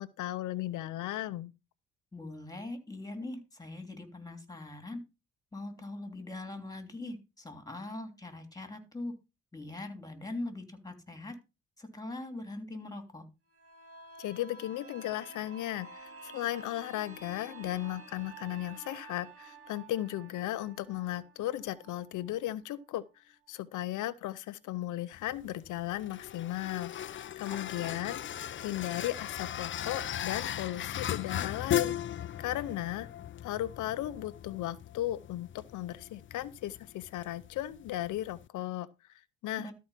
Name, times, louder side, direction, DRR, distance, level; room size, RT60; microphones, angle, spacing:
voice 1, 0.0-1.5 14.2-33.1 33.4-39.7, left 14 dB, 80° left, 0.7 m, -36 dB
voice 2, 2.1-5.0 5.5-9.1 9.5-11.3 11.8-13.2 27.5-28.1 39.6-39.7, left 2 dB, 10° left, 3.2 m, -42 dB
sound 1, 13.5-23.1 23.5-23.6, right 3 dB, 45° right, 3.0 m, -51 dB
sound 2, 25.1-38.5, left 10 dB, 40° left, 0.5 m, -38 dB
13.0 x 4.7 x 5.7 m
cardioid pair, 90°, 30 cm